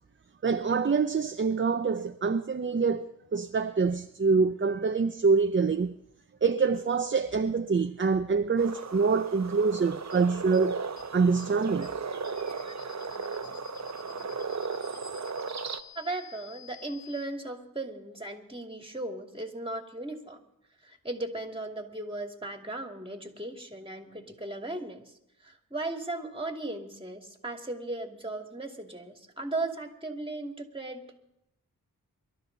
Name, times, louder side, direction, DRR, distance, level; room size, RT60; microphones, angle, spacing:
voice 1, 0.4-5.9 6.4-10.8 11.1-11.9, right 4 dB, 35° right, 0.6 m, -25 dB
sound 1, 8.6-15.8, right 5 dB, 50° right, 0.9 m, -36 dB
sound 2, 10.1-10.2 10.5-10.6 11.0-11.1 11.4-11.5 11.8-11.9 12.2-17.2, left 11 dB, 35° left, 3.0 m, -50 dB
voice 2, 15.9-20.4 20.8-25.0 25.4-31.2, right 2 dB, 15° right, 2.5 m, -37 dB
24.5 x 12.5 x 4.0 m
cardioid pair, 40°, 35 cm